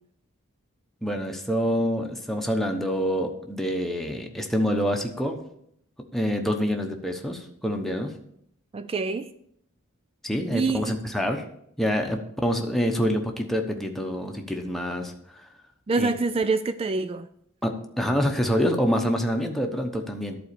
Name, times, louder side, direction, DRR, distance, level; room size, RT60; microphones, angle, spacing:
voice 1, 1.0-5.4 6.1-8.1 10.2-11.5 11.8-15.1 16.0-16.1 17.6-20.4, equal, ahead, 1.0 m, -26 dB
voice 2, 8.7-9.3 10.5-10.9 15.9-17.3, right 3 dB, 25° right, 0.3 m, -26 dB
11.5 x 4.2 x 6.8 m
head